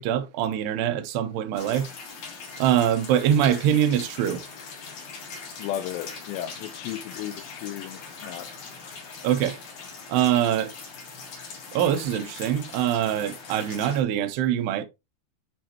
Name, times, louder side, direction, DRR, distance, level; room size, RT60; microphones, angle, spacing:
voice 1, 0.0-1.9 2.6-4.4 9.2-9.6 10.1-10.7 11.7-14.8, right 10 dB, 80° right, 2.5 m, -23 dB
sound 1, 1.5-14.0, left 4 dB, 50° left, 2.5 m, -41 dB
voice 2, 5.6-8.5, left 12 dB, 80° left, 2.6 m, -34 dB
9.0 x 4.7 x 2.8 m
omnidirectional pair, 5.3 m